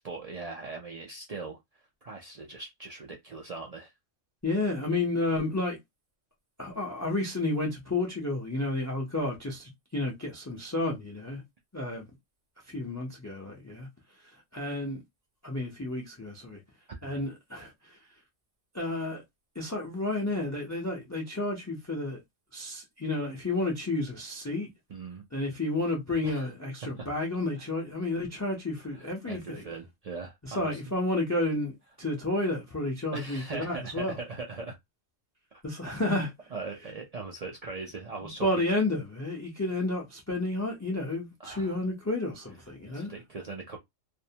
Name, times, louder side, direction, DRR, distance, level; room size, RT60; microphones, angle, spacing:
voice 1, 0.0-1.6 2.0-3.9 16.9-17.2 24.9-25.3 26.2-26.5 27.0-27.1 27.6-27.7 28.9-30.8 33.1-34.8 36.5-38.6 41.4-41.7 42.9-43.8, right 3 dB, 75° right, 0.3 m, -40 dB
voice 2, 4.4-5.8 6.6-11.4 11.7-12.1 12.7-13.9 14.5-15.0 15.4-16.6 17.0-18.0 18.7-19.2 19.6-22.2 22.5-24.7 25.3-29.7 30.4-34.2 35.6-36.3 38.4-43.1, left 2 dB, 25° left, 0.4 m, -31 dB
2.6 x 2.1 x 2.7 m
omnidirectional pair, 1.3 m